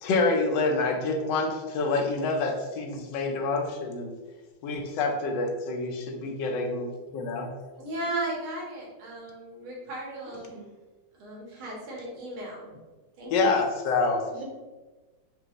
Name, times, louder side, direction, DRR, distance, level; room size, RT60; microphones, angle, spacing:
voice 1, 0.0-4.1 4.6-7.5 13.3-14.2, left 3 dB, 75° left, 3 dB, 1.1 m, -27 dB
voice 2, 7.8-10.4 11.2-12.8 13.2-13.6, right 1 dB, 80° right, -4 dB, 1.8 m, -36 dB
voice 3, 10.2-10.8 14.3-14.4, right 3 dB, 65° right, -1 dB, 1.2 m, -47 dB
5.1 x 2.1 x 2.9 m, 1.2 s
omnidirectional pair, 2.2 m